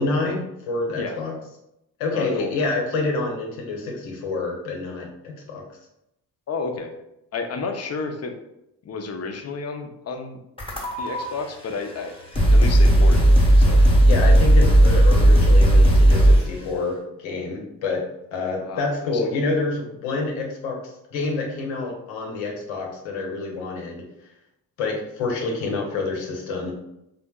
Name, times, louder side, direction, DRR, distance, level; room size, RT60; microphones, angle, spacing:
voice 1, 0.0-1.3 2.0-5.6 14.0-18.1 18.3-24.0 24.8-26.7, left 3 dB, 75° left, 1 dB, 0.8 m, -27 dB
voice 2, 2.1-2.7 6.5-6.9 7.3-8.3 8.8-10.4 11.0-12.1 12.5-14.1 18.6-19.3, left 4 dB, 35° left, 4 dB, 0.6 m, -31 dB
sound 1, 10.6-11.2 12.0-12.1 12.3-16.6, right 1 dB, 10° left, 1.0 m, -14 dB
3.4 x 2.5 x 2.3 m, 0.84 s
hypercardioid pair, 40°, 48 cm